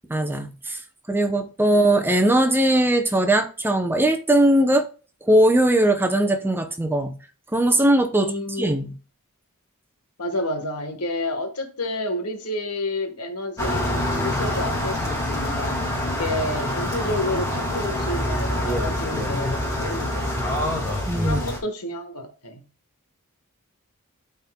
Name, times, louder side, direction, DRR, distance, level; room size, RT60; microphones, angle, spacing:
voice 1, 0.1-0.8 1.1-4.9 5.2-7.1 7.5-8.3 8.6-8.9 21.1-21.4, right 1 dB, 10° right, 0.7 m, -20 dB
voice 2, 8.1-8.7 10.2-22.6, left 1 dB, 80° left, 1.4 m, -30 dB
sound 1, 13.6-21.6, left 1 dB, 15° left, 2.3 m, -26 dB
12.0 x 4.3 x 2.3 m
head